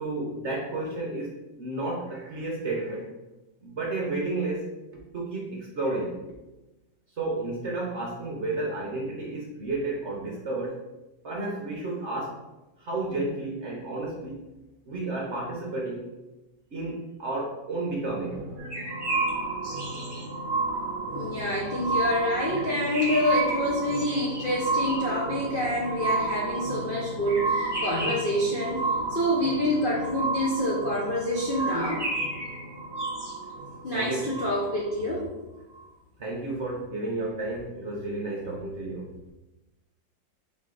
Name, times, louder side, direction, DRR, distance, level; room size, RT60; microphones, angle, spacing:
voice 1, 0.0-3.1 3.6-4.7 5.1-6.2 7.2-10.8 11.2-12.4 12.8-14.5 14.9-16.0 16.7-18.4 33.9-34.3 36.2-39.3, right 2 dB, 55° right, -3 dB, 0.8 m, -32 dB
sound 1, 18.2-35.0 35.8-35.9, right 3 dB, 85° right, 0.5 m, -32 dB
sound 2, 18.6-20.2 22.5-25.2 27.3-28.4 31.6-33.3, right 1 dB, 15° right, 1.0 m, -35 dB
voice 2, 21.1-32.0 33.8-35.3, left 1 dB, 85° left, -5 dB, 0.4 m, -27 dB
4.0 x 3.2 x 3.8 m, 1.0 s
omnidirectional pair, 2.0 m